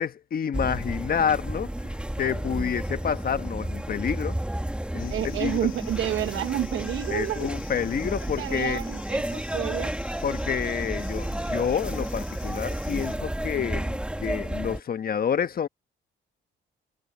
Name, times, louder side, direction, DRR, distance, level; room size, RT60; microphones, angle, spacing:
voice 1, 0.0-4.4 4.9-5.7 7.1-8.8 10.2-15.7, left 7 dB, 50° left, 1.3 m, -29 dB
sound 1, 0.5-14.8, right 1 dB, 5° right, 1.8 m, -32 dB
sound 2, 5.0-13.2, left 13 dB, 85° left, 2.4 m, -49 dB
voice 2, 5.1-7.5 8.4-9.9, right 12 dB, 80° right, 1.0 m, -29 dB
cardioid pair, 90°, 20 cm